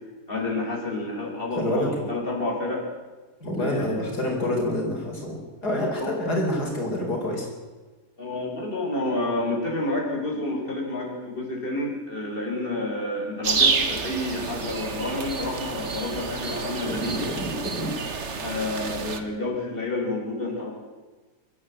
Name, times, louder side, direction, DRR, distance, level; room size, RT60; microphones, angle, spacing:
voice 1, 0.3-2.9 3.6-3.9 6.0-6.1 8.2-17.1 18.4-20.7, left 2 dB, 35° left, -2 dB, 5.3 m, -29 dB
voice 2, 1.6-2.1 3.4-7.5 17.0-17.9, left 1 dB, 90° left, 0 dB, 4.8 m, -27 dB
sound 1, 13.4-19.2, right 5 dB, 45° right, 1.6 m, -28 dB
23.0 x 14.0 x 8.7 m, 1.3 s
omnidirectional pair, 1.7 m